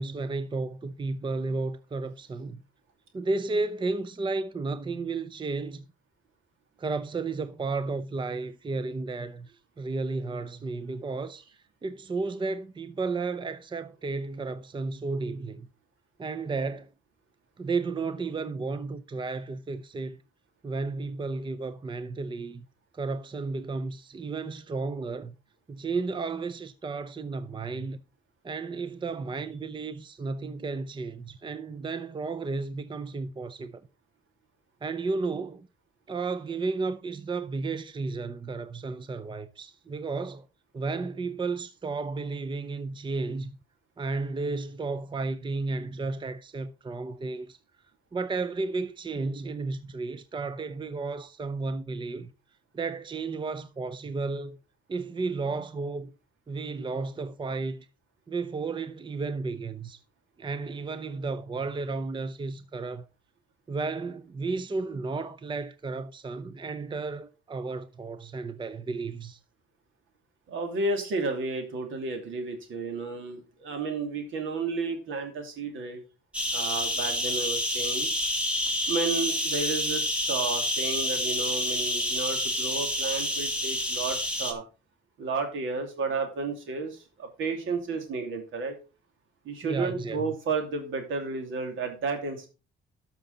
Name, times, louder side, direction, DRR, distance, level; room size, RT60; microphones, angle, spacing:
voice 1, 0.0-2.6 3.1-5.8 6.8-9.5 9.8-11.4 11.8-15.7 16.2-16.9 17.6-20.2 20.6-22.7 22.9-25.4 25.7-28.0 28.4-33.8 34.8-35.7 36.1-40.5 40.7-43.5 44.0-47.6 48.1-52.3 52.7-54.6 54.9-56.1 56.5-57.9 58.3-60.0 60.4-63.1 63.7-69.4 89.6-90.3, right 3 dB, 25° right, 0.6 m, -33 dB
voice 2, 70.5-76.0 76.5-78.1 78.9-84.6 85.2-88.7 89.4-92.5, right 3 dB, 80° right, 2.7 m, -32 dB
sound 1, 76.3-84.5, left 1 dB, 5° right, 2.0 m, -28 dB
12.5 x 5.9 x 3.9 m
cardioid pair, 90°, 20 cm